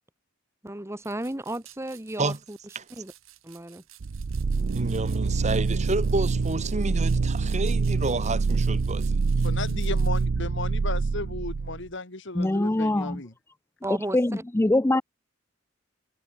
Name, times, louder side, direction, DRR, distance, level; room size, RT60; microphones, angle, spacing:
voice 1, 0.6-2.6 2.9-3.1 3.4-3.8 13.8-14.4, right 1 dB, 15° right, 1.5 m, -34 dB
sound 1, 1.0-10.3, right 14 dB, 90° right, 4.5 m, -53 dB
sound 2, 4.0-11.9, right 4 dB, 70° right, 0.6 m, -26 dB
voice 2, 4.7-9.2, right 2 dB, 35° right, 1.9 m, -30 dB
voice 3, 9.4-13.3, left 3 dB, 65° left, 2.9 m, -35 dB
voice 4, 12.3-13.2 14.1-15.0, left 1 dB, 10° left, 0.4 m, -23 dB
head